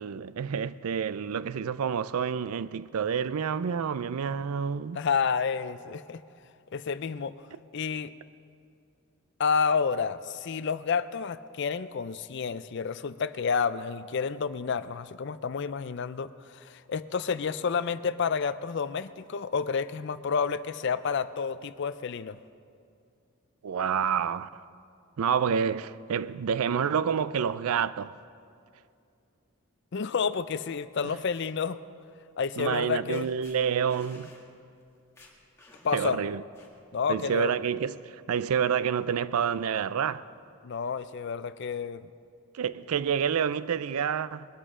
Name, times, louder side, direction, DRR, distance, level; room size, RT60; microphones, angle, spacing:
voice 1, 0.0-5.0 23.6-24.6 25.2-28.1 31.0-31.2 32.6-34.3 35.9-36.4 37.1-40.2 42.5-44.5, right 7 dB, 75° right, 0.4 m, -28 dB
voice 2, 4.9-6.2 6.7-7.3 7.7-8.1 9.4-22.4 29.9-31.8 32.4-33.3 35.8-36.2 36.9-37.5 40.6-42.1, left 6 dB, 50° left, 0.4 m, -30 dB
sound 1, 31.3-31.5 32.7-32.8 33.1-33.6 33.9-34.5 34.8-34.9 35.2-36.1 36.5-37.0, left 2 dB, 10° left, 1.8 m, -54 dB
21.0 x 13.0 x 3.7 m
head